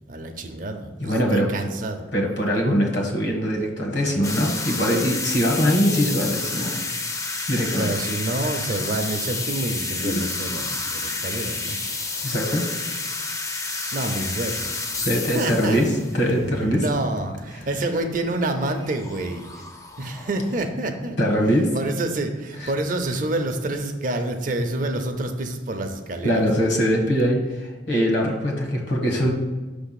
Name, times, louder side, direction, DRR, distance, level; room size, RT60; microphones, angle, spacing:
voice 1, 0.1-2.1 7.8-11.8 13.9-14.9 15.3-15.8 16.8-19.6 20.0-21.2 21.7-26.4, right 2 dB, 50° right, 6 dB, 0.6 m, -28 dB
voice 2, 1.0-1.5 2.1-6.8 7.5-7.9 10.0-10.2 12.2-12.7 15.0-16.8 21.2-21.7 22.6-22.7 26.2-29.3, equal, 70° left, 0 dB, 1.4 m, -22 dB
sound 1, 4.2-20.7, left 3 dB, 20° left, 0.5 m, -31 dB
5.9 x 3.5 x 5.8 m, 1.2 s
head